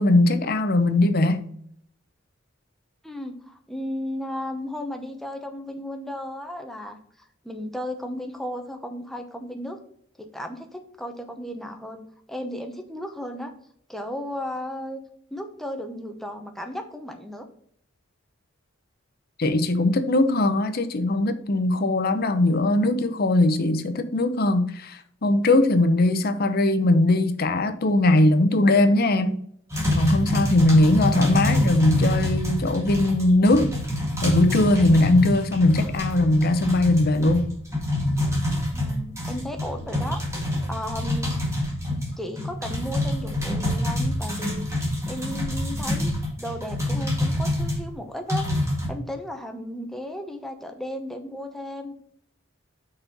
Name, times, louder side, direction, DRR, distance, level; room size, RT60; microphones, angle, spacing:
voice 1, 0.0-1.5 19.4-29.4 29.9-33.7 34.2-37.5, left 2 dB, 50° left, 0.7 m, -20 dB
voice 2, 3.0-7.0 7.4-9.8 10.2-12.0 12.3-13.5 13.9-15.0 15.3-17.5 38.7-40.2 40.7-41.3 41.9-44.7 45.1-46.1 46.4-48.5 48.9-51.9, left 1 dB, ahead, 0.8 m, -34 dB
sound 1, 29.7-47.8 48.3-48.9, left 1 dB, 15° right, 2.0 m, -26 dB
5.9 x 4.3 x 5.2 m
head